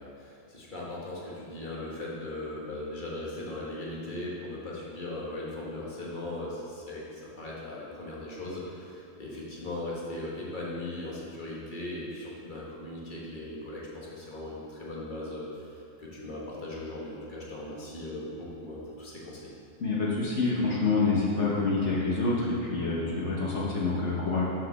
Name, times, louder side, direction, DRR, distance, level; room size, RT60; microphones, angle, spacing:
voice 1, 0.0-19.5, left 1 dB, 35° left, -5 dB, 1.5 m, -38 dB
voice 2, 19.8-24.4, left 3 dB, 55° left, -5 dB, 1.3 m, -27 dB
6.5 x 5.1 x 6.1 m, 2.6 s
omnidirectional pair, 1.5 m